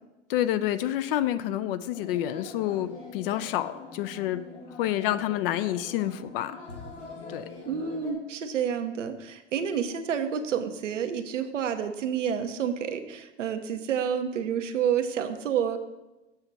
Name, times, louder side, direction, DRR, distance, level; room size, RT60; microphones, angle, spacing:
voice 1, 0.3-4.4 4.8-6.6 7.3-7.4, left 12 dB, 50° left, 14 dB, 0.5 m, -28 dB
sound 1, 1.9-8.1, left 3 dB, 75° left, 1.9 m, -44 dB
voice 2, 7.6-15.8, right 8 dB, 85° right, 6 dB, 0.9 m, -29 dB
8.0 x 5.9 x 4.0 m, 1.0 s
hypercardioid pair, 105°, 36 cm